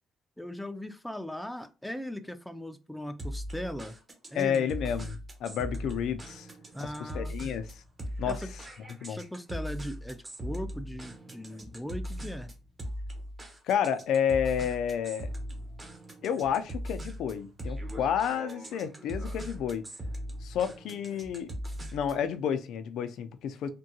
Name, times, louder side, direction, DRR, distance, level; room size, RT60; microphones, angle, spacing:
voice 1, 0.4-4.0 4.3-4.8 6.7-7.3 8.3-8.5 9.1-12.5, equal, 5° left, 0.4 m, -39 dB
sound 1, 3.2-22.3, equal, 30° right, 1.0 m, -39 dB
voice 2, 4.3-6.5 6.8-7.8 8.2-8.5 9.0-9.2 13.7-15.3 16.2-19.9 20.4-21.5 21.9-23.7, left 8 dB, 80° left, 0.4 m, -30 dB
3.6 x 2.2 x 2.7 m
cardioid pair, 90°, 0 cm